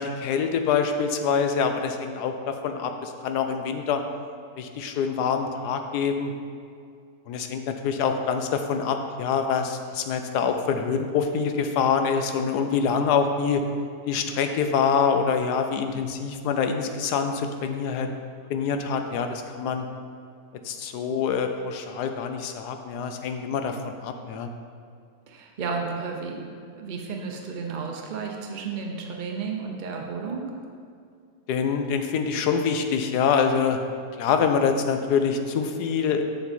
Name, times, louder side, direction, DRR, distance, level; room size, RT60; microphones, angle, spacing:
voice 1, 0.0-4.0 4.6-6.3 7.3-13.6 14.1-18.1 18.5-19.9 20.6-24.5 31.5-33.8 34.2-36.2, left 6 dB, 75° left, 6 dB, 1.2 m, -25 dB
voice 2, 25.3-30.4, right 5 dB, 65° right, 1 dB, 0.4 m, -33 dB
6.8 x 6.8 x 4.3 m, 2.3 s
omnidirectional pair, 1.8 m